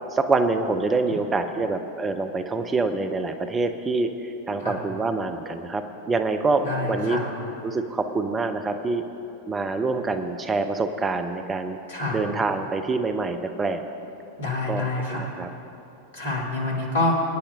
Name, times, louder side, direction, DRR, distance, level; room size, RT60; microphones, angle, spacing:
voice 1, 0.1-7.2 7.6-9.0 9.5-11.8 12.1-13.8 14.7-14.8 15.1-15.5, right 3 dB, 15° right, 8 dB, 0.6 m, -26 dB
voice 2, 6.6-7.3 11.9-12.2 14.4-15.3 16.1-17.1, left 2 dB, 65° left, -2 dB, 2.8 m, -27 dB
24.5 x 9.9 x 2.7 m, 2.9 s
figure-of-eight pair, 90°, 0 cm